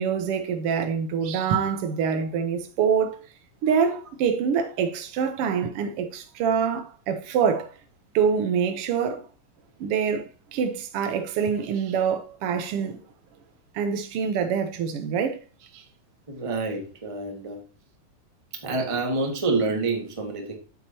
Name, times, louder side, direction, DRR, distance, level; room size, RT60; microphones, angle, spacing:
voice 1, 0.0-3.3 3.6-7.7 8.1-9.3 9.8-10.2 10.5-13.0 13.7-15.4 15.7-15.8, right 7 dB, 80° right, 1.3 m, -25 dB
voice 2, 16.3-17.6 18.6-20.6, right 3 dB, 40° right, 0.4 m, -27 dB
8.2 x 8.2 x 2.8 m
omnidirectional pair, 3.8 m